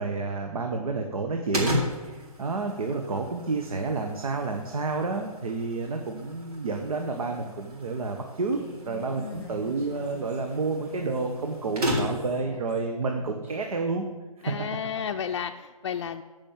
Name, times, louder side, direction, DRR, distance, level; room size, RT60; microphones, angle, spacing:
voice 1, 0.0-8.6 8.8-14.0, right 3 dB, 70° right, 3 dB, 1.4 m, -30 dB
sound 1, 1.5-12.4, left 1 dB, 85° right, 3.8 m, -35 dB
Human voice, 8.5-13.7, right 1 dB, 10° right, 1.8 m, -47 dB
voice 2, 9.2-9.6 14.4-16.2, left 8 dB, 50° left, 5 dB, 0.5 m, -33 dB
10.0 x 5.5 x 7.4 m, 1.3 s
hypercardioid pair, 155°, 19 cm